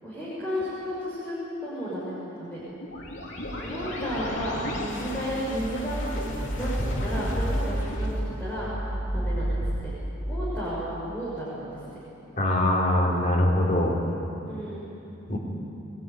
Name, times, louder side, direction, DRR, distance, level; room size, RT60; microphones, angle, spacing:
voice 1, 0.0-1.3 1.6-2.6 3.5-6.3 6.5-8.1 8.4-8.7 9.1-9.9 10.2-12.0 14.4-14.9, equal, 10° left, -10 dB, 6.8 m, -33 dB
sound 1, 2.8-9.7, equal, 70° left, 3.7 m, -31 dB
voice 2, 12.4-13.9 15.3-15.4, left 1 dB, 40° left, -3 dB, 3.9 m, -22 dB
24.0 x 20.0 x 9.7 m, 2.9 s
head